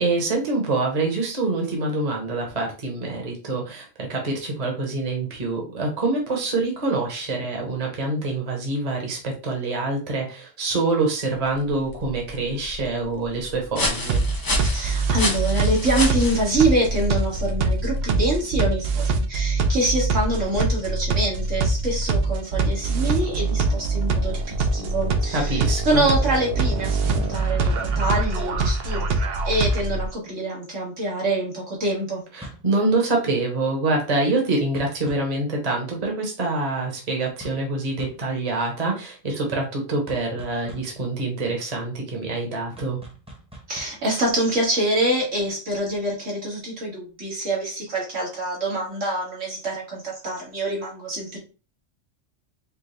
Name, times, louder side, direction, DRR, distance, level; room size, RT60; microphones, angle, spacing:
voice 1, 0.0-14.2 25.3-26.0 32.3-43.0, right 2 dB, 35° right, 1 dB, 1.1 m, -25 dB
sound 1, 11.3-18.8, left 2 dB, 35° left, 0.3 m, -31 dB
sound 2, 14.1-30.1, right 3 dB, 60° right, 0.8 m, -23 dB
voice 2, 14.7-32.2 43.7-51.4, right 1 dB, 80° right, -4 dB, 2.1 m, -25 dB
sound 3, 26.7-29.5 32.4-32.8 34.8-35.4 37.4-37.7 38.0-38.3 40.1-41.0 42.8-44.0, equal, 5° right, 0.9 m, -41 dB
4.7 x 2.3 x 3.2 m, 0.33 s
omnidirectional pair, 1.3 m